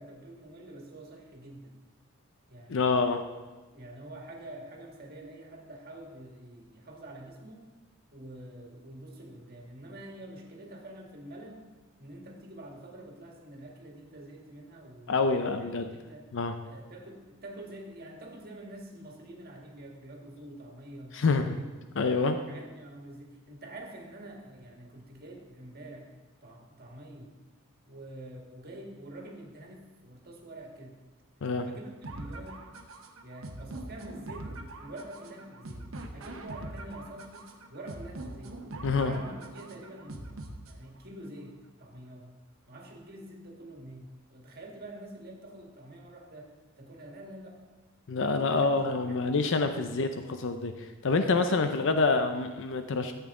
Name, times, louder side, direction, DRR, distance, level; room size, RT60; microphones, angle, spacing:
voice 1, 0.0-1.7 2.5-3.2 3.7-7.7 8.1-11.7 12.0-15.1 15.4-16.3 16.6-21.7 22.1-26.1 26.4-27.3 27.9-31.0 31.7-32.7 33.2-38.6 38.9-40.3 40.7-42.3 42.7-47.7 48.4-48.8 49.0-50.0, right 1 dB, 50° right, 1 dB, 1.7 m, -46 dB
voice 2, 2.7-3.2 15.1-15.9 16.3-16.6 21.1-21.6 22.0-22.4 31.4-31.7 38.8-39.2 48.1-53.1, left 3 dB, 65° left, 8 dB, 0.6 m, -27 dB
sound 1, 32.0-41.0, right 2 dB, 75° right, 1.0 m, -42 dB
12.5 x 8.1 x 3.7 m, 1.2 s
head